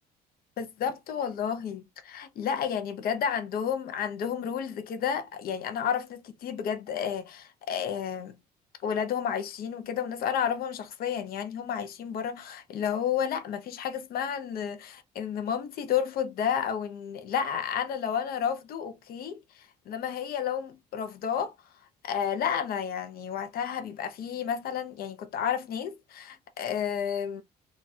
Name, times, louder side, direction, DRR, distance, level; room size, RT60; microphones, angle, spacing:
voice 1, 0.6-8.3 8.8-19.4 19.9-21.5 22.0-27.4, left 8 dB, 60° left, 0.8 m, -31 dB
3.0 x 2.4 x 4.1 m
cardioid pair, 110°, 17 cm